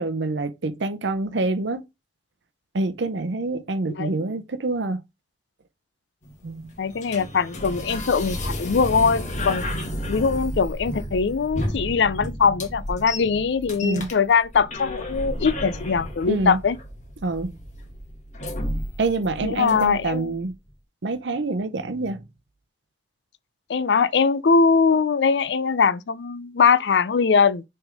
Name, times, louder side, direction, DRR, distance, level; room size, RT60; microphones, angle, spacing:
voice 1, 0.0-1.8 2.7-5.0 6.4-6.7 13.8-14.1 16.3-16.6 17.2-17.6 19.0-20.5 21.0-22.2, right 3 dB, 85° right, 0.7 m, -26 dB
sound 1, 6.2-20.2, left 1 dB, 45° left, 1.4 m, -32 dB
voice 2, 6.8-9.6 10.1-16.8 19.4-20.3 23.7-27.6, left 5 dB, 70° left, 0.5 m, -21 dB
6.1 x 3.5 x 4.9 m
head